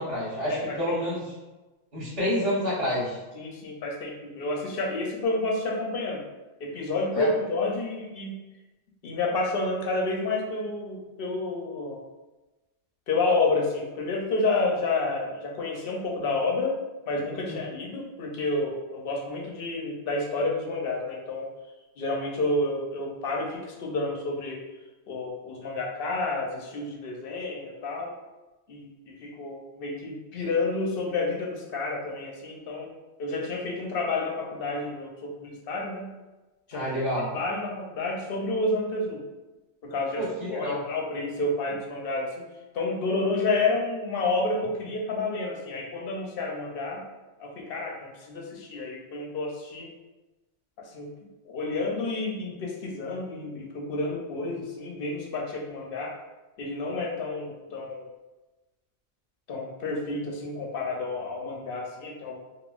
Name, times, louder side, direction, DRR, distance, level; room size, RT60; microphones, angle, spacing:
voice 1, 0.0-1.3 1.9-3.2 7.1-7.3 17.4-17.7 36.7-37.3 40.1-40.8, left 1 dB, 60° right, -10 dB, 1.4 m, -28 dB
voice 2, 3.3-6.2 6.6-8.3 9.0-12.0 13.1-16.7 17.1-21.5 22.0-24.6 25.1-28.1 28.7-32.9 33.2-36.1 36.7-36.9 37.3-39.2 39.8-42.3 42.7-47.0 47.4-49.9 50.8-51.1 51.5-56.1 56.6-58.1 59.5-62.4, left 2 dB, 65° left, 0 dB, 0.7 m, -30 dB
3.7 x 2.0 x 2.3 m, 1.1 s
omnidirectional pair, 1.2 m